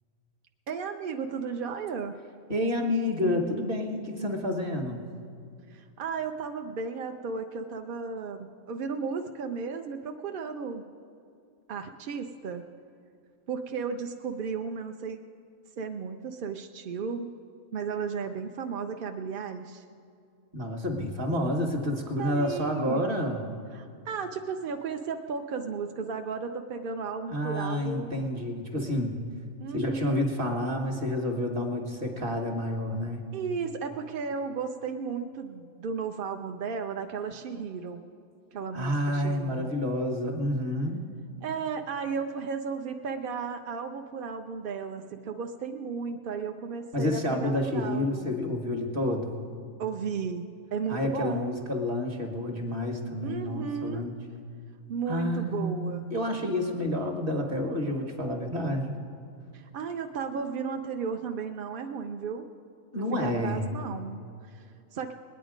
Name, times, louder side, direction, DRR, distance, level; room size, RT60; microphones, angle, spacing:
voice 1, 0.7-2.2 5.7-10.8 11.7-12.6 13.5-15.2 15.8-17.3 17.7-19.8 22.2-23.1 23.7-28.2 29.6-30.2 33.3-38.0 38.5-39.7 41.4-48.4 49.8-50.4 50.7-51.5 53.2-54.1 54.9-56.0 59.5-62.5 62.9-65.1, right 5 dB, 60° right, 5 dB, 0.6 m, -34 dB
voice 2, 2.5-5.1 20.5-23.4 27.3-29.1 29.7-33.3 38.7-41.1 46.9-49.4 50.9-54.1 55.1-59.0 62.9-63.6, left 1 dB, 40° right, 3 dB, 1.5 m, -29 dB
20.0 x 9.4 x 5.1 m, 2.4 s
omnidirectional pair, 1.4 m